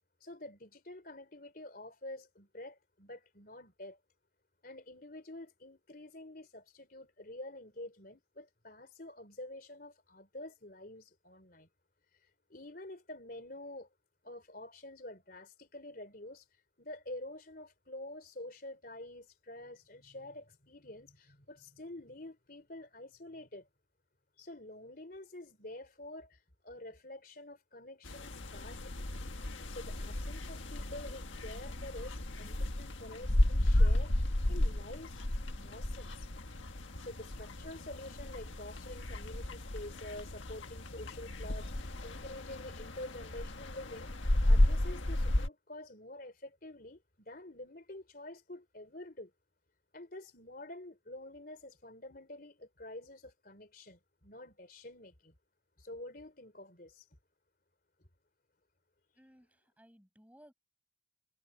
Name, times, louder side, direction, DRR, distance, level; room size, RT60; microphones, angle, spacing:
voice 1, 0.2-4.0 4.6-11.7 12.5-13.9 14.2-16.4 16.8-23.7 24.4-29.1 29.7-35.2 35.6-36.3 37.0-44.1 44.5-49.3 49.9-55.3 55.8-57.1, left 1 dB, 50° left, 3.8 m, -48 dB
sound 1, 28.0-45.5, left 1 dB, 80° left, 1.6 m, -33 dB
voice 2, 59.2-60.5, equal, 10° right, 6.5 m, -60 dB
head